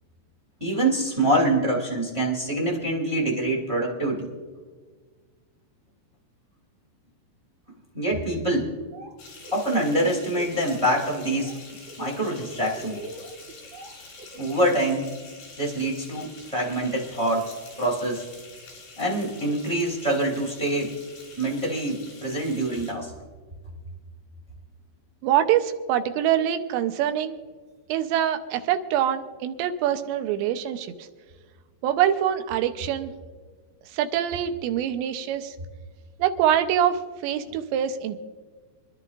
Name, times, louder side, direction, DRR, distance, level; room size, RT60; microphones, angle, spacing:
voice 1, 0.6-4.3 7.9-8.7 9.5-11.6 12.0-13.0 14.3-15.2 15.6-18.3 19.0-20.9 21.4-23.1, right 1 dB, 15° right, -3 dB, 1.3 m, -25 dB
Laughter, 8.7-9.1 9.4-10.8 11.2-11.5 11.9-14.7, right 2 dB, 60° right, 3.4 m, -42 dB
sound 1, 9.2-22.9, left 3 dB, 65° left, 6.6 m, -46 dB
voice 2, 25.2-27.4 27.9-31.1 31.8-33.1 33.9-35.6 36.2-38.2, right 10 dB, 80° right, 8 dB, 2.9 m, -24 dB
27.5 x 11.0 x 2.5 m, 1.5 s
omnidirectional pair, 5.2 m